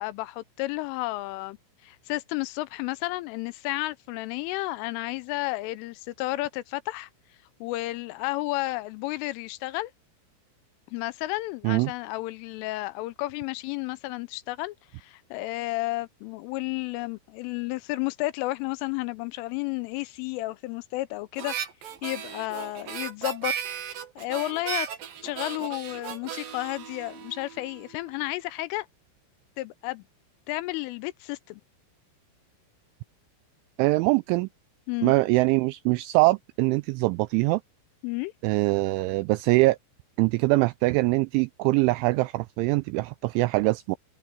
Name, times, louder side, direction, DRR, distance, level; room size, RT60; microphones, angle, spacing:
voice 1, 0.0-1.6 1.8-7.1 7.6-9.9 10.9-21.5 22.0-23.5 24.2-24.9 25.2-28.9 29.6-30.0 30.5-31.6 34.9-35.1 38.0-38.3, left 19 dB, 80° left, 3.0 m, -32 dB
Harmonica, 21.4-27.9, right 9 dB, 60° right, 2.9 m, -36 dB
voice 2, 33.8-34.5 35.0-37.6 38.4-39.8 40.2-44.0, right 22 dB, 90° right, 2.7 m, -23 dB
omnidirectional pair, 6.0 m